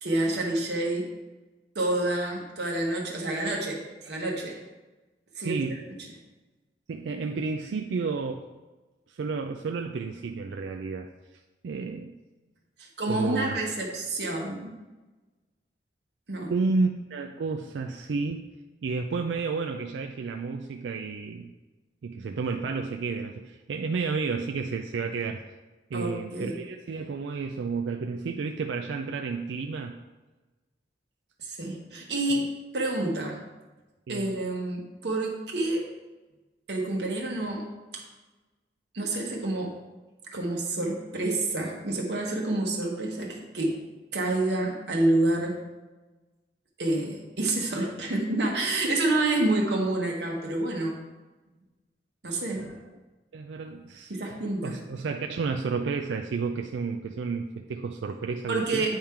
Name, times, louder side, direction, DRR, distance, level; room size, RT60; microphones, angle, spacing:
voice 1, 0.0-1.1 1.7-4.6 5.4-5.6 12.8-14.8 16.3-16.5 25.9-26.6 31.4-32.4 32.7-33.4 34.1-35.8 36.7-37.7 37.9-38.0 38.9-39.8 40.3-43.8 44.1-45.6 46.8-50.9 52.2-52.8 54.1-54.8 58.5-59.0, right 2 dB, 70° right, -1 dB, 1.1 m, -28 dB
voice 2, 5.4-5.9 6.9-8.4 9.1-11.1 11.6-12.1 13.1-13.6 16.5-18.4 18.8-21.5 22.0-25.4 25.9-30.0 32.3-32.4 34.1-34.3 53.3-58.8, right 4 dB, 85° right, 4 dB, 0.4 m, -31 dB
8.8 x 3.7 x 4.4 m, 1.2 s
head